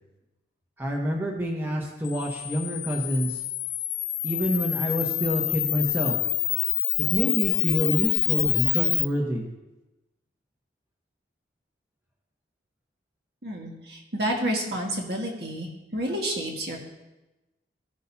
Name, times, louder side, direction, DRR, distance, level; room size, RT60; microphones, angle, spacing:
voice 1, 0.8-3.4 4.2-6.2 7.1-9.5, equal, 10° right, -1 dB, 1.0 m, -27 dB
Camera, 2.0-9.1, left 15 dB, 85° left, 0.5 m, -27 dB
voice 2, 13.4-16.8, right 1 dB, 60° right, -1 dB, 1.8 m, -30 dB
15.5 x 6.2 x 2.8 m, 1.0 s
head